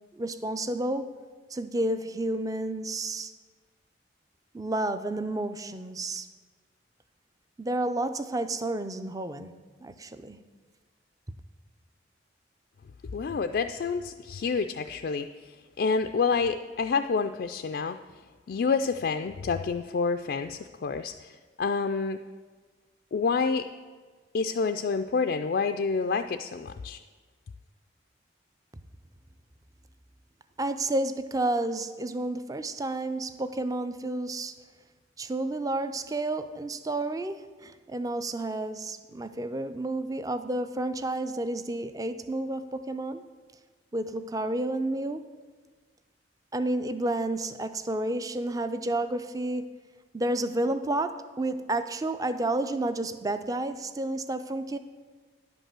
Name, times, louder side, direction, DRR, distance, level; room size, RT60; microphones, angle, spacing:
voice 1, 0.1-1.1 1.5-3.3 4.5-6.3 7.6-9.5 9.8-10.4 30.6-34.5 35.2-43.2 43.9-45.3 46.5-49.7 50.1-54.8, right 2 dB, 20° right, 11 dB, 0.4 m, -30 dB
voice 2, 13.1-18.0 18.5-22.2 23.1-23.7 24.3-27.0, left 5 dB, 55° left, 8 dB, 0.3 m, -28 dB
10.5 x 5.4 x 7.5 m, 1.4 s
head